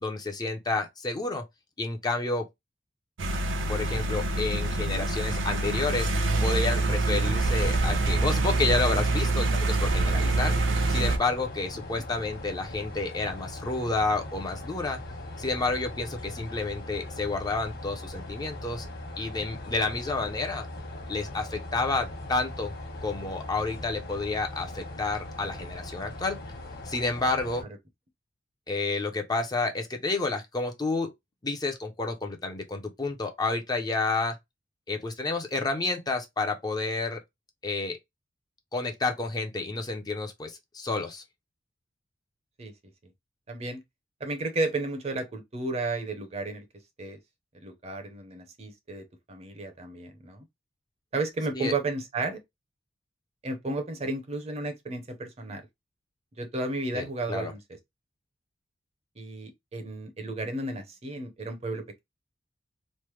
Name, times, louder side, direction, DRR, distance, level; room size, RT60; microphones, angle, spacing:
voice 1, 0.0-1.4 1.8-2.4 3.7-6.1 6.4-10.5 10.9-15.0 15.4-18.9 19.2-20.7 21.1-22.7 23.0-26.4 26.9-27.6 28.7-31.1 31.4-34.3 34.9-37.2 37.6-38.0 38.7-41.2 51.6-51.7 56.9-57.5, left 3 dB, 20° left, 0.5 m, -30 dB
sound 1, 3.2-11.2, right 2 dB, 80° right, 0.6 m, -25 dB
sound 2, 9.9-27.6, left 1 dB, 55° left, 1.1 m, -40 dB
voice 2, 43.5-43.8 44.2-46.6 47.0-47.2 47.5-50.5 51.1-52.4 53.4-55.6 56.4-57.6 59.2-62.0, right 2 dB, 35° right, 0.6 m, -33 dB
3.1 x 2.1 x 3.0 m
head